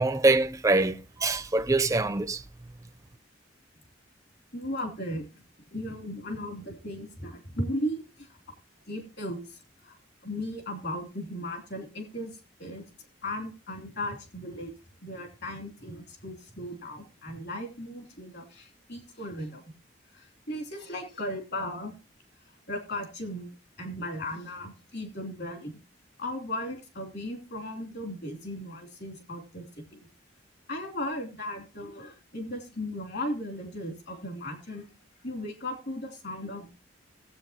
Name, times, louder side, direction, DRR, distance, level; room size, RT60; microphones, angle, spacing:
voice 1, 0.0-2.4, right 2 dB, 15° right, 0.4 m, -24 dB
voice 2, 4.5-5.4 5.7-8.4 8.9-10.0 10.2-12.8 13.2-14.7 15.0-19.6 20.1-21.9 22.7-23.5 23.8-25.7 26.2-30.1 30.7-34.8 35.2-36.7, left 1 dB, 60° left, 2.8 m, -36 dB
17.5 x 8.3 x 2.8 m
head